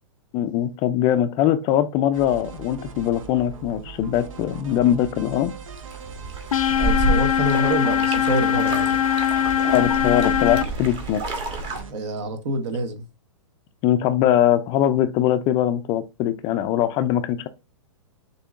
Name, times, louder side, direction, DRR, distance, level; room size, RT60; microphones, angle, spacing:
voice 1, 0.3-5.5 9.7-11.2 13.8-17.5, left 11 dB, 25° left, 0.4 m, -21 dB
sound 1, 2.1-11.9, right 6 dB, 85° right, 0.8 m, -40 dB
sound 2, 5.8-11.8, right 2 dB, 30° right, 1.3 m, -29 dB
sound 3, 6.5-10.6, left 10 dB, 90° left, 0.4 m, -21 dB
voice 2, 6.8-9.0 11.9-13.0, right 1 dB, 60° right, 1.2 m, -26 dB
6.7 x 2.7 x 2.4 m
hypercardioid pair, 130°, 17 cm